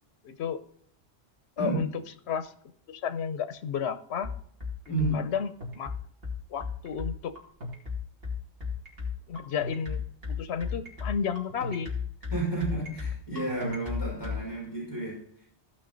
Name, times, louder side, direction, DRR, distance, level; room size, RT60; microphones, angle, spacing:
voice 1, 0.2-0.6 1.6-1.9 2.3-2.5 2.9-4.3 5.1-5.9 6.5-7.3 9.3-11.9, left 7 dB, 75° left, 13 dB, 1.0 m, -32 dB
sound 1, 4.2-14.4, left 5 dB, 60° right, 2.7 m, -34 dB
voice 2, 4.9-5.2 12.3-15.4, right 2 dB, 20° left, -4 dB, 4.9 m, -31 dB
15.0 x 5.7 x 3.9 m, 0.62 s
omnidirectional pair, 1.1 m